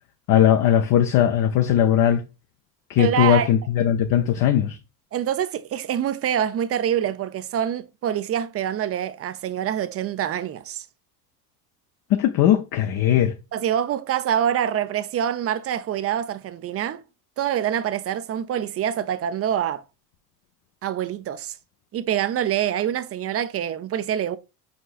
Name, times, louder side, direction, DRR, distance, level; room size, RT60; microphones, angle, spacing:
voice 1, 0.3-2.2 2.9-4.8 12.1-13.4, left 10 dB, 45° left, 0.6 m, -19 dB
voice 2, 3.0-3.5 5.1-10.9 13.5-17.0 17.4-19.8 20.8-21.5 21.9-24.4, right 10 dB, 30° right, 0.4 m, -25 dB
4.9 x 4.2 x 2.3 m
hypercardioid pair, 75°, 49 cm